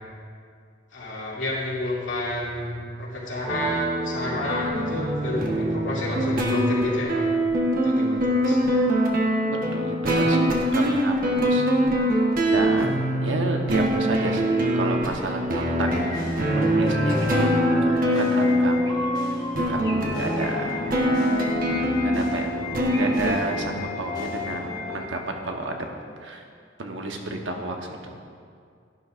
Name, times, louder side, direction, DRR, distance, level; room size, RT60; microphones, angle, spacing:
voice 1, 0.9-7.2 7.8-8.6, left 1 dB, 90° left, -6 dB, 2.6 m, -29 dB
sound 1, 3.5-23.4, equal, 50° right, 1.2 m, -23 dB
voice 2, 9.4-11.7 12.4-16.3 16.5-19.1 19.7-20.8 21.1-21.4 21.7-22.5 22.8-25.9 26.2-26.5 26.8-28.2, right 2 dB, 80° right, 2 dB, 1.1 m, -31 dB
sound 2, 15.8-25.1, left 2 dB, 20° left, 1.2 m, -32 dB
12.0 x 11.5 x 2.5 m, 2.2 s
head